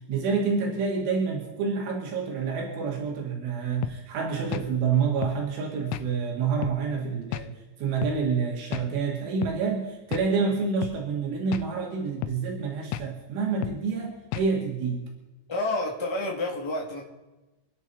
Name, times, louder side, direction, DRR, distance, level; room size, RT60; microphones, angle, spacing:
voice 1, 0.1-15.1, right 5 dB, 85° right, 0 dB, 4.7 m, -28 dB
sound 1, 3.8-4.0 4.5-4.7 5.2-5.4 5.9-6.1 6.6-6.8 7.3-7.5 8.0-8.2 8.7-8.9 9.4-9.6 10.1-10.3 10.8-11.0 11.5-11.7 12.2-12.4 12.9-13.1 13.6-13.8 14.3-14.5, left 13 dB, 80° left, 2.9 m, -33 dB
voice 2, 15.5-17.0, left 2 dB, 10° left, -2 dB, 1.5 m, -29 dB
27.0 x 11.0 x 4.3 m, 1.1 s
omnidirectional pair, 5.4 m